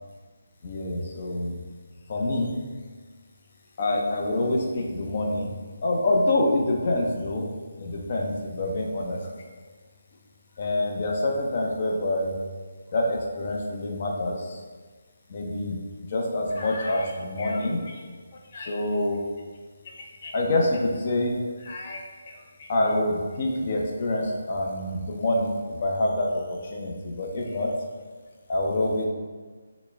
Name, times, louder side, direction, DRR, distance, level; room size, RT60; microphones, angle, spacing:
voice 1, 0.6-1.6 2.1-2.5 3.8-5.5 5.8-7.5 7.8-9.2 10.6-12.4 12.9-14.6 15.3-15.8 16.1-18.1 18.5-19.2 20.2-27.7 28.5-29.1, left 1 dB, 40° left, 0 dB, 0.6 m, -26 dB
4.1 x 2.1 x 3.3 m, 1.5 s
hypercardioid pair, 165°, 0 cm